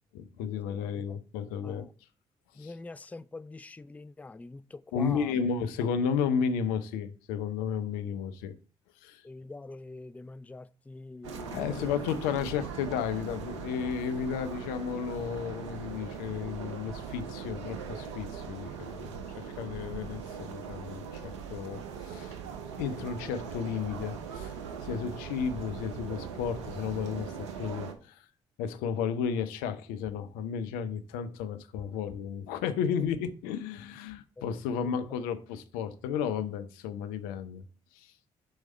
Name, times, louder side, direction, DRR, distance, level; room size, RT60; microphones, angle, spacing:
voice 1, 0.1-1.9 2.6-2.7 4.9-8.5 9.0-9.2 11.5-22.4 22.8-24.5 24.8-28.3 28.6-37.6 37.9-38.1, left 7 dB, 75° left, 0.6 m, -33 dB
voice 2, 0.7-1.2 1.6-1.9 2.5-5.5 9.2-12.0 25.0-25.1 33.0-33.1 34.7-35.2, left 2 dB, 10° left, 0.4 m, -45 dB
sound 1, 11.2-27.9, right 6 dB, 90° right, 0.7 m, -40 dB
6.4 x 4.7 x 4.2 m
hypercardioid pair, 40°, 15 cm